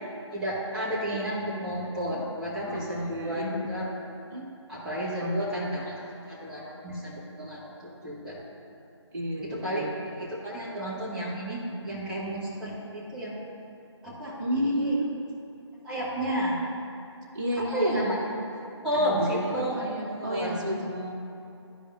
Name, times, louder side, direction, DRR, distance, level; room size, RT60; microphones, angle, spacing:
voice 1, 0.3-3.8 4.7-5.9 6.2-8.4 9.4-13.3 14.0-14.3 14.6-15.0 15.8-16.6 17.6-18.2 18.8-19.7 20.1-20.5, equal, 5° right, -10 dB, 1.4 m, -31 dB
voice 2, 2.1-3.7 4.3-4.6 5.2-5.9 9.1-10.0 14.4-15.1 17.3-18.1 18.9-21.1, equal, 40° right, -6 dB, 1.8 m, -32 dB
14.0 x 5.0 x 2.6 m, 2.8 s
figure-of-eight pair, 155°, 15 cm